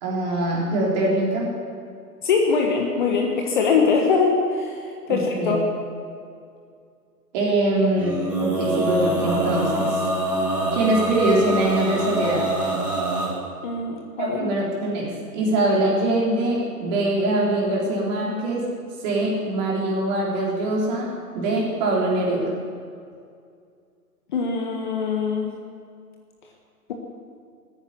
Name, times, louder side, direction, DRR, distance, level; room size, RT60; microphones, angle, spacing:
voice 1, 0.0-1.5 5.1-5.6 7.3-10.1 10.7-12.5 14.2-18.7 19.0-22.5, right 2 dB, 25° right, -3 dB, 3.7 m, -23 dB
voice 2, 2.2-4.8 5.1-5.6 13.6-14.5 24.3-25.5, left 5 dB, 30° left, 1 dB, 1.4 m, -22 dB
Male singing, 8.0-13.3, right 1 dB, 5° right, 1.5 m, -25 dB
15.5 x 9.6 x 9.6 m, 2.3 s
hypercardioid pair, 150°, 49 cm